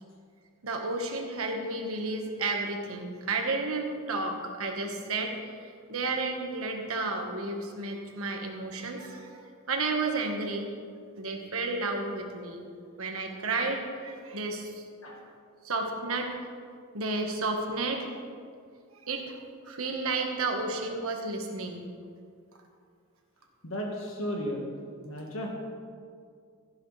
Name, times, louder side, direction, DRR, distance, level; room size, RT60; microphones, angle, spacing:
voice 1, 0.6-10.7 11.1-12.6 13.0-14.8 15.6-16.3 16.9-18.1 18.9-19.4 19.6-21.8, right 3 dB, 75° right, 3 dB, 1.5 m, -32 dB
voice 2, 23.6-24.7 25.0-25.5, equal, 70° left, 0 dB, 1.6 m, -34 dB
14.5 x 10.5 x 3.3 m, 2.2 s
head